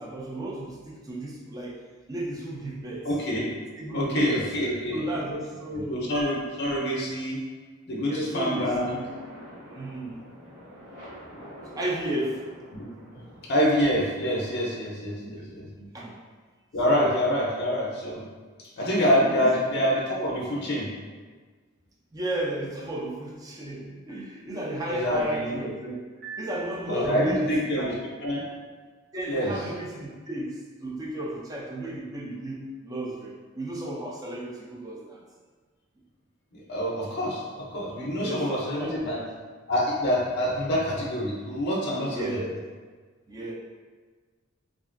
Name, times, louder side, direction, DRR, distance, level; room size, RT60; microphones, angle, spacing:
voice 1, 0.0-1.8 2.1-3.1 3.8-4.5 4.9-6.0 8.1-9.1 9.7-10.2 11.7-12.5 13.1-13.2 15.2-16.2 16.8-17.2 19.1-19.6 22.1-28.0 29.1-35.2 38.1-39.1 42.1-42.6 43.3-43.5, right 1 dB, 15° right, -3 dB, 0.3 m, -34 dB
voice 2, 3.0-3.5 3.9-5.0 5.9-7.4 7.9-9.0 12.7-12.8 13.4-15.7 16.7-18.2 18.8-20.9 24.9-25.5 26.9-27.9 28.2-28.4 29.3-29.5 36.7-39.2 39.7-42.4, equal, 55° left, -3 dB, 0.5 m, -26 dB
sound 1, 8.4-14.5, equal, 60° right, 1.2 m, -47 dB
Piano, 26.2-27.5, right 5 dB, 45° right, 0.9 m, -42 dB
2.8 x 2.4 x 2.4 m, 1.5 s
head